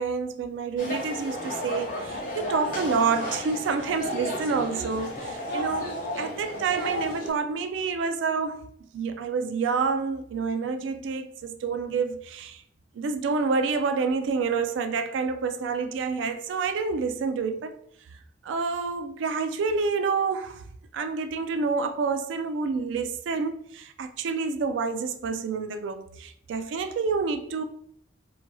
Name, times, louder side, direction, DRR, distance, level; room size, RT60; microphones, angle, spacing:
voice 1, 0.0-8.7 8.9-12.6 13.0-17.8 18.4-20.6 20.9-27.6, right 5 dB, 80° right, 0.3 m, -28 dB
sound 1, 0.8-7.3, left 1 dB, 45° left, 0.6 m, -33 dB
2.9 x 2.5 x 2.2 m
head